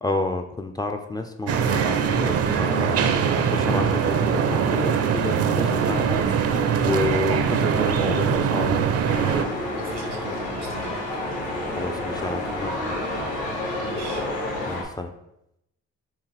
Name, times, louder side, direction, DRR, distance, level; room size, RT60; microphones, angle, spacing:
voice 1, 0.0-3.1 3.5-8.8 11.7-13.0 14.7-15.1, left 2 dB, 15° left, 4 dB, 0.3 m, -30 dB
sound 1, 1.5-9.4, right 7 dB, 55° right, 0.5 m, -22 dB
sound 2, 9.0-14.8, left 1 dB, 85° left, 1.3 m, -29 dB
voice 2, 9.7-11.0 13.8-14.3, right 2 dB, 85° right, 1 dB, 1.3 m, -39 dB
4.8 x 2.9 x 3.3 m, 0.81 s
cardioid pair, 90°, 30 cm